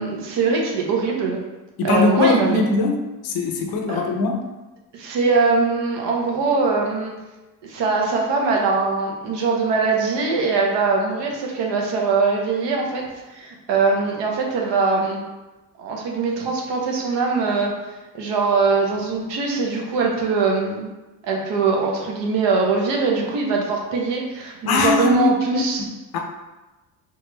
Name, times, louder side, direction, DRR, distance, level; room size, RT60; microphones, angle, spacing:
voice 1, 0.0-1.4 1.8-2.6 3.9-4.0 4.9-7.1 7.6-13.0 13.3-15.2 15.8-17.8 18.1-20.9 21.2-25.8, right 4 dB, 60° right, 0 dB, 0.9 m, -22 dB
voice 2, 1.8-4.4 24.7-25.9 26.1-26.2, left 3 dB, 50° left, 2 dB, 0.7 m, -21 dB
3.3 x 2.3 x 3.0 m, 1.1 s
hypercardioid pair, 65°, 48 cm